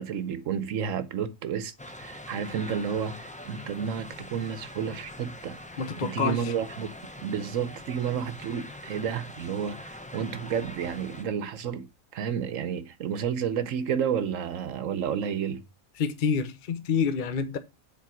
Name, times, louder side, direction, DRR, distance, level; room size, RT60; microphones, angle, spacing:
voice 1, 0.0-1.7 2.0-5.6 6.0-6.9 7.2-11.9 12.1-15.6, right 7 dB, 75° right, 1.0 m, -31 dB
sound 1, 1.8-11.2, left 1 dB, 10° left, 0.6 m, -43 dB
voice 2, 5.8-6.5 15.9-17.6, left 6 dB, 45° left, 0.8 m, -28 dB
7.4 x 4.5 x 5.8 m
omnidirectional pair, 1.4 m